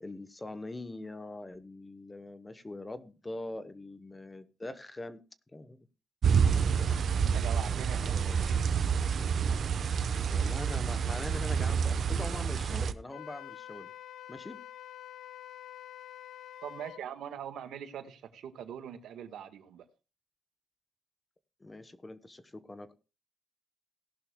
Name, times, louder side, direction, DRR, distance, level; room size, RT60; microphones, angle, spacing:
voice 1, 0.0-5.2 5.5-5.9 6.5-7.0 7.7-8.7 10.3-13.9 14.3-14.6 21.6-22.9, left 2 dB, 15° left, 12 dB, 0.9 m, -43 dB
sound 1, 6.2-12.9, right 6 dB, 55° right, 0.9 m, -28 dB
voice 2, 7.2-8.6 16.6-19.8, right 9 dB, 80° right, 9 dB, 1.4 m, -42 dB
Wind instrument woodwind instrument, 13.1-17.0, left 12 dB, 75° left, 0.8 m, -47 dB
17.5 x 11.0 x 2.2 m, 0.31 s
cardioid pair, 125°, 0 cm